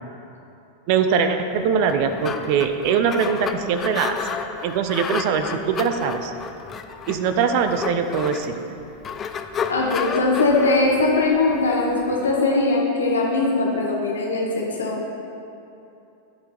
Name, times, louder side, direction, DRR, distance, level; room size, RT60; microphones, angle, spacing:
voice 1, 0.9-4.2 4.6-6.3 7.1-8.6, right 6 dB, 45° right, 8 dB, 0.7 m, -22 dB
sound 1, 1.7-12.4, left 6 dB, 25° left, 0.5 m, -32 dB
voice 2, 9.7-15.1, left 3 dB, 70° left, -2 dB, 1.5 m, -21 dB
15.0 x 5.3 x 4.0 m, 2.8 s
figure-of-eight pair, 90°, 0 cm